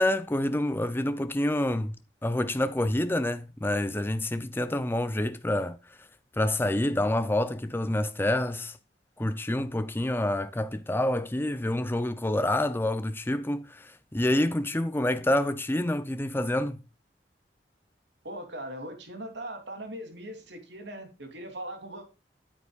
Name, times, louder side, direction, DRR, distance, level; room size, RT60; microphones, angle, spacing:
voice 1, 0.0-2.0 2.2-6.1 6.3-8.8 9.2-16.8, left 1 dB, 10° left, 0.5 m, -27 dB
voice 2, 18.2-22.0, right 1 dB, 80° right, 3.2 m, -40 dB
9.6 x 8.9 x 2.4 m
head